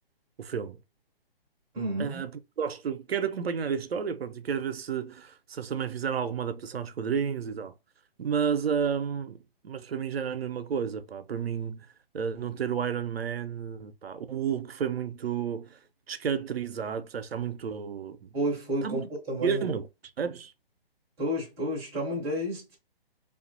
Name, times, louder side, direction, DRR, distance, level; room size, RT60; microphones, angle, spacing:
voice 1, 0.4-0.8 2.0-2.3 2.6-7.7 8.2-11.9 12.1-15.8 16.1-18.3 18.8-19.0 19.4-19.9 20.2-20.5, right 7 dB, 80° right, 0.6 m, -31 dB
voice 2, 1.7-2.2 18.3-19.7 21.2-22.8, right 1 dB, 10° right, 0.5 m, -31 dB
2.7 x 2.4 x 2.5 m
figure-of-eight pair, 145°, 30 cm